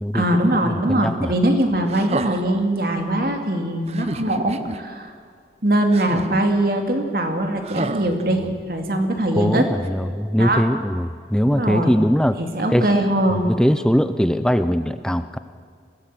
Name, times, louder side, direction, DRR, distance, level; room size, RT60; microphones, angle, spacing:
voice 1, 0.1-5.1 5.6-8.4 8.7-9.7 10.4-10.6 11.5-12.0 12.4-13.5, right 1 dB, 55° right, 4 dB, 2.6 m, -21 dB
voice 2, 0.9-1.3 9.4-12.4 12.7-12.8 13.5-15.4, equal, 5° left, 11 dB, 0.5 m, -20 dB
sound 1, 1.9-2.7 3.9-4.8 5.9-6.6 7.6-8.8 9.8-9.9, right 2 dB, 35° right, 0.8 m, -31 dB
23.0 x 17.5 x 7.7 m, 2.1 s
head